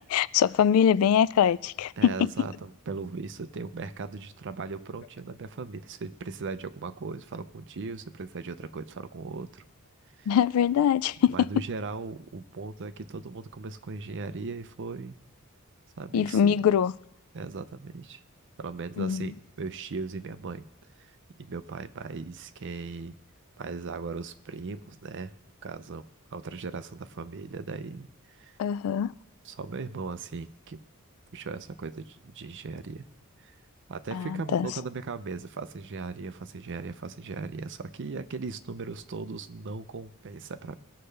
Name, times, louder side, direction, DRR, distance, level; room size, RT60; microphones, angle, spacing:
voice 1, 0.1-2.3 10.3-11.5 16.1-16.9 19.0-19.3 28.6-29.1 34.1-34.7, left 8 dB, 70° left, 0.3 m, -23 dB
voice 2, 2.0-9.6 10.2-10.4 11.3-15.2 16.0-16.7 17.3-18.2 18.6-20.7 21.0-21.1 21.4-23.1 23.6-25.3 25.6-28.6 29.4-30.8 31.3-33.0 33.4-33.6 33.9-40.8, right 4 dB, 55° right, 0.5 m, -38 dB
18.5 x 6.5 x 3.3 m
head